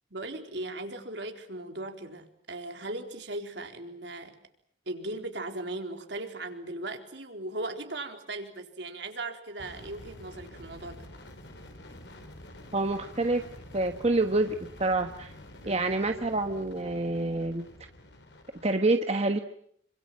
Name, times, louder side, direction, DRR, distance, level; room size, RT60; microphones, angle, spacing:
voice 1, 0.1-4.4 4.9-11.0 15.6-15.9, right 2 dB, 70° right, 5 dB, 4.1 m, -38 dB
sound 1, 9.6-18.8, left 1 dB, 70° left, 4.8 m, -48 dB
voice 2, 12.7-13.4 13.7-15.3 15.7-17.6 18.6-19.4, right 2 dB, 35° right, 6 dB, 1.4 m, -27 dB
28.0 x 25.5 x 7.6 m, 0.66 s
head